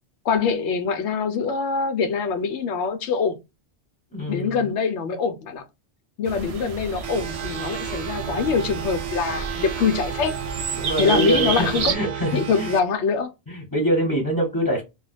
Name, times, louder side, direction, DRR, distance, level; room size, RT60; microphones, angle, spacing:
voice 1, 0.2-3.4 4.3-5.6 6.2-10.3 11.0-11.9 12.3-13.3, left 5 dB, 90° left, 0.9 m, -24 dB
voice 2, 4.1-4.6 10.8-12.7 13.5-14.8, right 1 dB, 20° left, 1.1 m, -24 dB
sound 1, 6.3-12.0, right 5 dB, 60° right, 0.4 m, -31 dB
sound 2, 7.0-12.8, right 10 dB, 75° right, 0.8 m, -32 dB
2.4 x 2.2 x 3.9 m
omnidirectional pair, 1.1 m